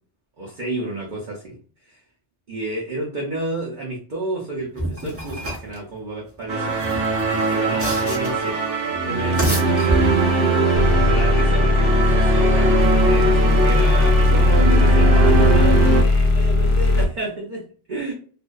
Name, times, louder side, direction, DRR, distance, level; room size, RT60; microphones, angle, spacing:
voice 1, 0.4-1.6 1.8-2.0 2.5-6.8 7.2-9.7 11.0-18.1, right 2 dB, 50° right, -3 dB, 0.7 m, -31 dB
sound 1, 4.8-5.8 6.7-8.5 9.1-10.5, right 1 dB, 20° right, 0.4 m, -27 dB
sound 2, 6.5-16.0, right 3 dB, 75° right, 0.9 m, -21 dB
sound 3, 10.7-17.1, left 2 dB, 65° left, 0.9 m, -17 dB
2.5 x 2.1 x 2.2 m, 0.43 s
omnidirectional pair, 1.2 m